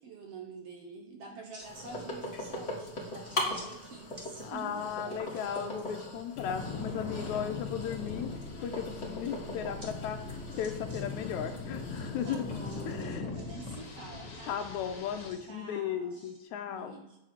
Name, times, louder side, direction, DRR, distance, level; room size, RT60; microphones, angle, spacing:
voice 1, 0.0-5.3 12.2-14.6 15.5-16.4 16.7-17.2, right 4 dB, 65° right, 2 dB, 1.7 m, -47 dB
sound 1, 0.6-0.8 1.3-2.0 2.3-2.4 2.8-3.8 4.1-4.3 4.8-5.6 7.8-8.3 9.8-9.9 10.2-11.0 11.3-11.4 12.2-13.6 14.1-15.5 16.1-16.4, equal, 40° right, 0.4 m, -53 dB
sound 2, 1.6-13.0, left 1 dB, 25° left, 1.7 m, -41 dB
voice 2, 4.4-8.3 8.6-10.2 10.6-12.5 12.9-13.2 14.5-17.0, left 8 dB, 80° left, 6 dB, 1.9 m, -36 dB
sound 3, 6.4-15.3, left 3 dB, 50° left, 2.4 m, -40 dB
8.6 x 7.4 x 4.3 m, 0.94 s
omnidirectional pair, 3.7 m